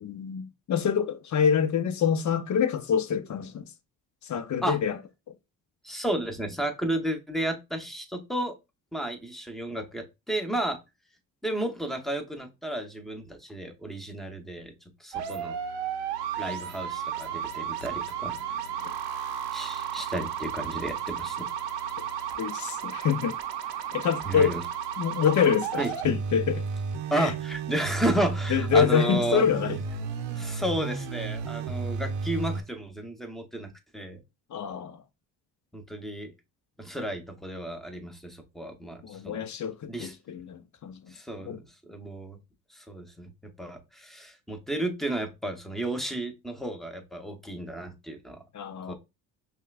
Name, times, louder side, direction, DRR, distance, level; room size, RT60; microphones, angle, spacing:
voice 1, 0.0-3.7 4.2-5.0 16.5-16.6 22.4-23.4 23.9-24.5 25.0-26.6 27.2-27.3 28.5-29.8 34.5-35.0 39.0-41.1 41.4-41.6 48.5-48.9, left 7 dB, 45° left, 0.6 m, -26 dB
voice 2, 5.8-8.5 8.9-10.8 11.4-14.7 15.0-15.6 16.4-18.9 19.5-21.5 24.2-24.6 25.8-25.9 27.1-29.4 30.3-34.2 35.7-36.3 36.8-39.5 39.9-40.1 41.1-42.4 42.7-43.3 43.6-48.4 48.8-48.9, right 1 dB, ahead, 0.8 m, -32 dB
sound 1, 15.1-32.6, right 7 dB, 90° right, 0.7 m, -33 dB
5.6 x 2.2 x 2.4 m
cardioid pair, 80°, 42 cm